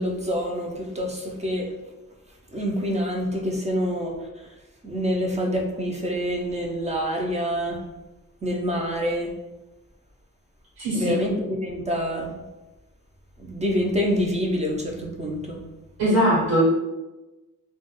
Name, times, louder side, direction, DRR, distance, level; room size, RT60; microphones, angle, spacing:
voice 1, 0.0-1.7 2.5-4.1 4.8-7.8 8.4-9.3 10.9-12.4 13.4-15.6, equal, 20° right, 0 dB, 0.4 m, -26 dB
voice 2, 16.0-16.6, equal, 85° right, -8 dB, 1.1 m, -20 dB
2.2 x 2.2 x 2.9 m, 1.1 s
cardioid pair, 90°, 34 cm